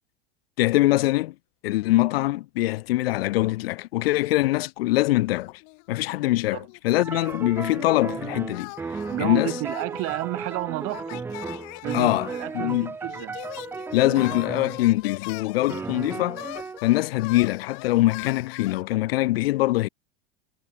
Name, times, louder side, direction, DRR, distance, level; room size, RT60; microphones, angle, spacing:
voice 1, 0.6-1.3 1.6-5.5 5.9-8.7 9.2-9.5 11.9-12.3 12.5-12.9 13.9-16.4 16.8-19.9, left 18 dB, 85° left, 0.7 m, -23 dB
sound 1, 5.4-6.2 6.5-7.8 8.5-18.8, left 40 dB or more, 60° left, 2.0 m, -42 dB
sound 2, 7.0-14.9 15.7-16.8, right 4 dB, 10° right, 0.3 m, -34 dB
voice 2, 9.1-11.3 11.8-13.4, right 23 dB, 50° right, 1.5 m, -31 dB
supercardioid pair, 120°, 29 cm